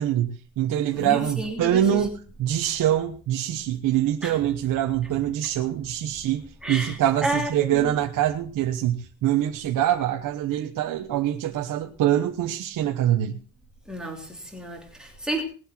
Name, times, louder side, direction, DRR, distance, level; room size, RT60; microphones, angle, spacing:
voice 1, 0.0-6.4 6.7-13.4, right 11 dB, 45° right, 2 dB, 1.2 m, -24 dB
voice 2, 0.9-2.0 4.2-4.3 6.6-7.0 7.2-7.9 13.9-15.4, right 1 dB, ahead, 0 dB, 3.0 m, -31 dB
19.5 x 8.0 x 4.4 m, 0.37 s
cardioid pair, 160°, 45 cm